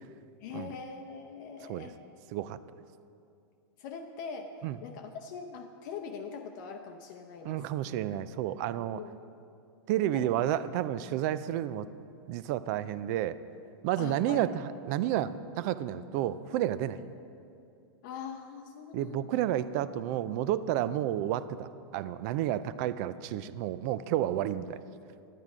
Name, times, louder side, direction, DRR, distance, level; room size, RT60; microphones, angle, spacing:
voice 1, 0.4-2.0 3.8-4.5 4.8-7.7 8.9-9.2 10.1-10.3 14.0-14.4 18.0-19.3, left 6 dB, 50° left, 4 dB, 0.7 m, -42 dB
voice 2, 7.4-9.0 9.9-11.9 12.3-13.4 13.8-17.0 18.9-24.8, right 12 dB, 40° right, 15 dB, 0.4 m, -31 dB
10.5 x 9.4 x 4.9 m, 2.5 s
supercardioid pair, 150°, 13 cm